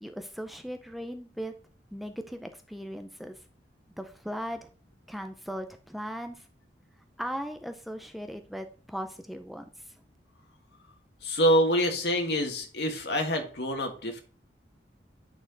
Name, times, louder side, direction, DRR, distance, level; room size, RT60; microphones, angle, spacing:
voice 1, 0.0-1.5 1.9-3.4 4.0-4.7 5.1-6.5 7.2-9.8, equal, ahead, 6 dB, 0.4 m, -38 dB
voice 2, 11.2-14.2, equal, 65° left, 3 dB, 1.7 m, -26 dB
8.6 x 4.4 x 3.9 m, 0.41 s
head